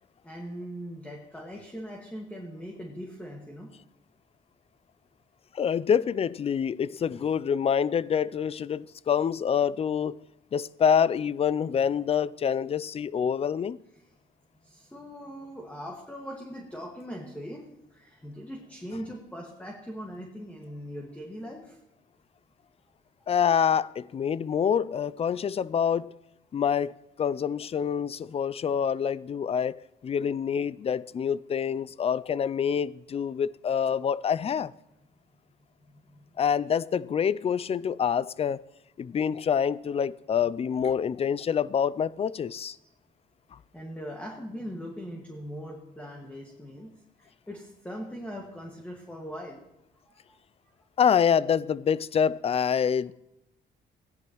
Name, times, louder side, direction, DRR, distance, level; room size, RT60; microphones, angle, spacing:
voice 1, 0.2-3.7 14.0-14.1 14.6-17.6 17.9-21.8 35.9-36.3 42.8-42.9 43.7-46.9 47.2-49.6 50.1-50.2 50.6-50.7, equal, 5° left, 1.8 m, -40 dB
voice 2, 5.5-10.2 10.5-13.8 23.3-26.1 26.5-34.7 36.4-38.6 39.0-42.8 43.5-43.6 51.0-53.1, left 7 dB, 30° left, 0.3 m, -26 dB
16.5 x 10.5 x 3.1 m
cardioid pair, 90°, 20 cm